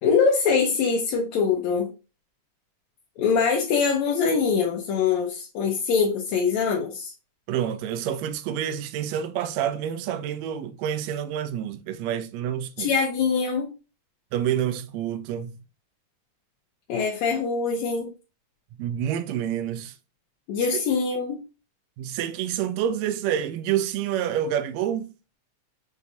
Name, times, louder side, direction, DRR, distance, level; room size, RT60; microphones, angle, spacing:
voice 1, 0.0-1.9 3.2-7.1 12.8-13.7 16.9-18.1 20.5-21.4, left 5 dB, 75° left, 2.0 m, -23 dB
voice 2, 7.5-12.9 14.3-15.6 18.8-19.9 22.0-25.1, right 10 dB, 80° right, 1.6 m, -28 dB
6.1 x 2.7 x 2.7 m
omnidirectional pair, 3.4 m